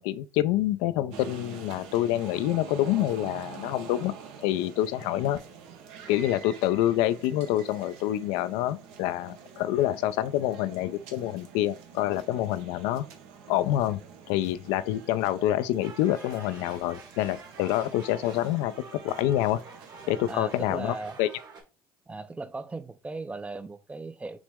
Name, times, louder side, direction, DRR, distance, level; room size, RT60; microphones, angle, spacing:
voice 1, 0.0-4.1 4.4-5.4 6.1-13.0 13.5-14.0 14.3-19.6 20.1-21.3, left 13 dB, 80° left, 0.4 m, -27 dB
sound 1, 1.1-21.0, right 6 dB, 80° right, 0.9 m, -47 dB
sound 2, 15.8-21.6, right 3 dB, 50° right, 1.3 m, -47 dB
voice 2, 20.2-21.2 22.1-24.4, right 3 dB, 15° right, 0.4 m, -37 dB
5.9 x 2.1 x 3.4 m
supercardioid pair, 100°, 9 cm